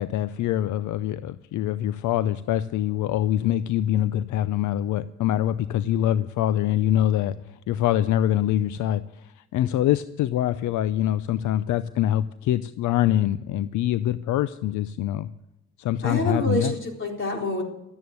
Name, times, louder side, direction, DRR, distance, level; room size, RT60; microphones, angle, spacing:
voice 1, 0.0-15.3 15.8-16.8, left 12 dB, 75° left, 15 dB, 0.5 m, -24 dB
voice 2, 16.0-17.6, left 1 dB, 40° left, 1 dB, 3.9 m, -27 dB
12.5 x 9.5 x 7.9 m, 0.92 s
cardioid pair, 90°, 30 cm